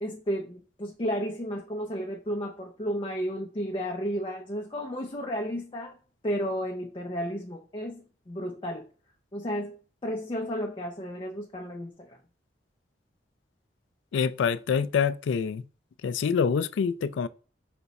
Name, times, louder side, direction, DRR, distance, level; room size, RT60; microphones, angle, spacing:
voice 1, 0.0-6.0 6.2-8.9 9.3-9.8 10.0-12.2, equal, 25° left, 0.5 m, -33 dB
voice 2, 14.1-15.6 16.0-17.3, left 6 dB, 90° left, 0.3 m, -26 dB
5.1 x 2.3 x 4.0 m
head